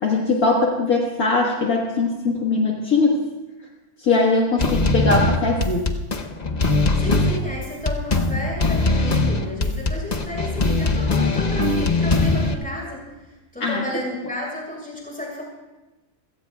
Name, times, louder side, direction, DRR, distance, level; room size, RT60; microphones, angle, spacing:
voice 1, 0.0-3.1 4.0-5.9 13.6-13.8, left 3 dB, 65° left, -1 dB, 2.1 m, -20 dB
sound 1, 4.6-12.5, left 2 dB, 35° left, 0.7 m, -21 dB
voice 2, 7.0-13.0 13.5-15.4, left 1 dB, 5° left, -4 dB, 6.6 m, -32 dB
29.0 x 17.0 x 2.3 m, 1.1 s
omnidirectional pair, 1.7 m